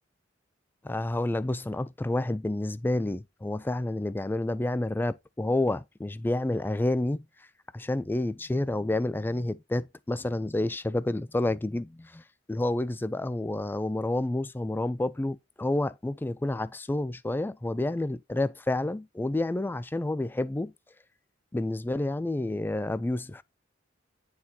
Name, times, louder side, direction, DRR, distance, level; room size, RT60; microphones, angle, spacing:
voice 1, 0.8-7.3 7.7-12.2 12.5-20.7 21.5-23.4, left 1 dB, 10° left, 0.3 m, -29 dB
9.6 x 4.1 x 2.7 m
head